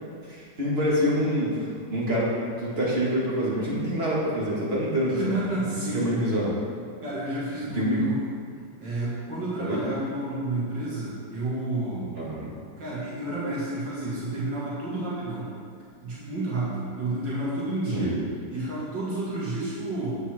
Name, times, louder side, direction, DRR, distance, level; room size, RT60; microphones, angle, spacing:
voice 1, 0.2-5.2 5.6-6.5 7.7-8.0 8.5-8.6 9.6-9.8 12.1-12.5 17.9-18.1, equal, 30° right, -6 dB, 2.3 m, -26 dB
voice 2, 5.1-6.2 7.0-8.2 8.8-12.2 12.8-15.5 16.0-18.2 18.5-20.2, right 2 dB, 70° right, -8 dB, 2.7 m, -30 dB
9.6 x 8.3 x 4.4 m, 2.2 s
omnidirectional pair, 2.0 m